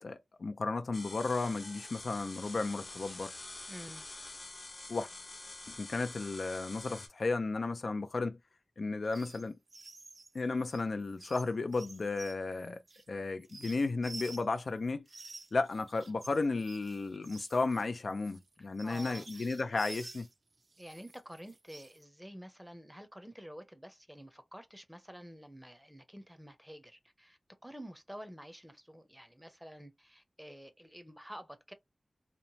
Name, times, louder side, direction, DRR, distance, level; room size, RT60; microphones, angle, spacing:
voice 1, 0.0-3.3 4.9-5.1 5.7-8.4 8.8-9.6 10.3-12.8 13.1-15.1 15.5-20.3, left 3 dB, 70° left, 0.3 m, -34 dB
sound 1, 0.9-7.1, left 2 dB, 55° left, 0.8 m, -47 dB
voice 2, 3.7-4.1 18.6-19.3 20.8-31.7, equal, 5° right, 0.6 m, -49 dB
sound 2, 9.1-9.4 9.7-14.7 15.1-20.3 20.7-22.0, right 3 dB, 60° right, 0.4 m, -50 dB
3.0 x 2.0 x 2.7 m
wide cardioid pair, 75°, 0 cm